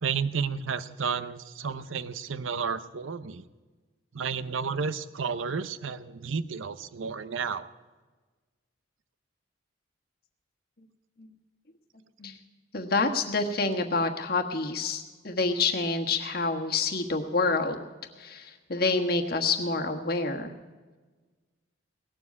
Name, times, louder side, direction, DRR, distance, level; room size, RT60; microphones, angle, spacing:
voice 1, 0.0-3.5 4.1-7.7, right 6 dB, 85° right, 14 dB, 0.7 m, -32 dB
voice 2, 12.7-17.8 18.2-20.5, left 3 dB, 50° left, 4 dB, 1.4 m, -27 dB
18.0 x 7.5 x 9.4 m, 1.3 s
head